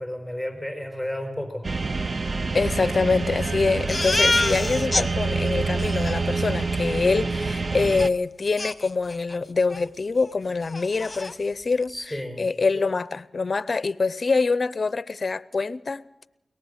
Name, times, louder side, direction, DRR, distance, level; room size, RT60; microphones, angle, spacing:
voice 1, 0.0-1.7 11.9-12.4, left 1 dB, 5° right, 4.4 m, -32 dB
sound 1, 1.6-8.1, right 3 dB, 50° right, 0.6 m, -27 dB
voice 2, 2.5-11.9 12.4-16.0, left 4 dB, 55° left, 0.6 m, -25 dB
Crying sobbing, 3.9-5.1 5.5-5.6 5.8-6.2 8.0-8.1 8.6-9.4 9.7-9.9 10.2-10.3 10.7-11.3, left 2 dB, 35° left, 1.2 m, -26 dB
22.5 x 19.0 x 6.6 m
cardioid pair, 55°, 0 cm